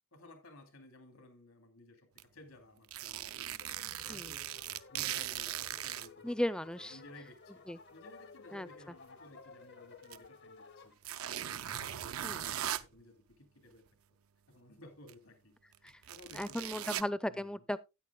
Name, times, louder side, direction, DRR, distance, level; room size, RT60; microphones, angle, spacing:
voice 1, 0.1-2.1 2.3-3.7 4.0-4.5 4.9-6.3 6.8-7.6 7.9-11.0 11.3-13.8 14.5-16.9 17.3-17.6, left 1 dB, 85° left, 2.6 m, -56 dB
sound 1, 2.2-2.3 2.8-6.1 7.0-7.1 10.0-10.2 11.0-12.8 15.1-15.2 15.7-17.0, right 11 dB, 80° right, 0.5 m, -39 dB
sound 2, 3.6-11.0, left 4 dB, 55° left, 0.7 m, -55 dB
voice 2, 6.2-7.0 7.7-7.8 8.5-8.9 12.2-12.4 15.8-16.0 16.3-17.8, left 1 dB, 5° left, 0.4 m, -36 dB
13.5 x 9.1 x 2.3 m
head